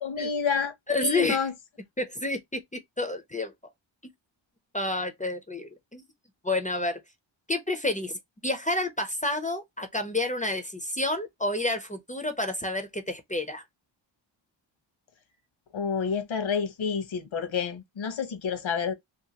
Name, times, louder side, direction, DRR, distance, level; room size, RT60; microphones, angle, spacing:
voice 1, 0.0-0.7 1.0-1.5 15.7-18.9, left 6 dB, 80° left, 1.0 m, -29 dB
voice 2, 0.9-1.5 2.0-3.5 4.0-4.1 4.7-6.0 6.4-7.0 7.5-13.6, left 2 dB, 15° left, 0.4 m, -29 dB
2.8 x 2.6 x 2.7 m
wide cardioid pair, 150°, 47 cm